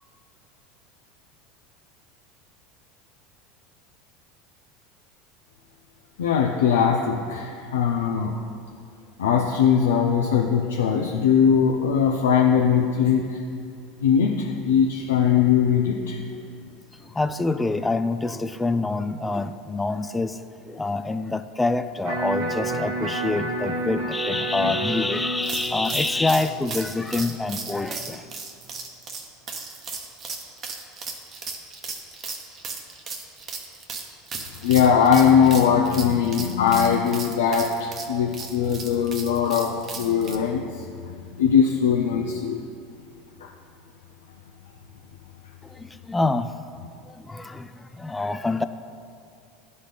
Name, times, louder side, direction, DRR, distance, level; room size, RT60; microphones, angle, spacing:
voice 1, 6.2-8.3 9.2-13.4 14.0-16.2 34.6-42.6 43.4-43.5, left 7 dB, 80° left, 0 dB, 0.4 m, -20 dB
voice 2, 17.1-20.4 20.7-28.2 45.8-46.5 47.1-47.7 48.0-48.6, left 3 dB, 10° left, 10 dB, 0.3 m, -26 dB
Electric guitar, 22.0-28.1, right 1 dB, 75° right, 1.6 m, -30 dB
sound 1, 25.4-40.4, right 4 dB, 40° right, 0.9 m, -36 dB
11.5 x 4.0 x 3.3 m, 2.4 s
hypercardioid pair, 85°, 0 cm